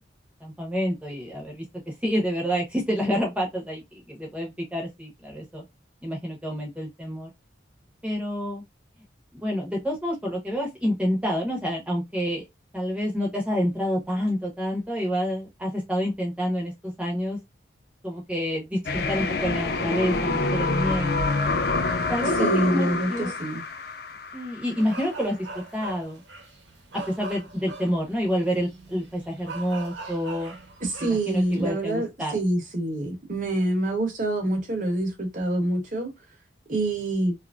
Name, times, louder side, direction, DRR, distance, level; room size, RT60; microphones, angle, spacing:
voice 1, 0.4-1.6 2.0-5.6 6.0-7.3 8.0-8.6 9.3-12.4 12.7-17.4 18.0-21.3 22.1-22.3 22.7-23.3 24.3-25.5 25.7-26.2 26.9-30.5 31.0-32.4, equal, 5° right, 1.0 m, -28 dB
sound 1, 18.9-24.8, left 3 dB, 50° left, 0.4 m, -26 dB
voice 2, 22.4-23.6 30.8-32.1 32.3-36.1 36.7-37.3, right 1 dB, 40° right, 1.0 m, -26 dB
sound 2, 24.8-31.7, right 2 dB, 70° right, 1.0 m, -41 dB
2.9 x 2.5 x 2.3 m
head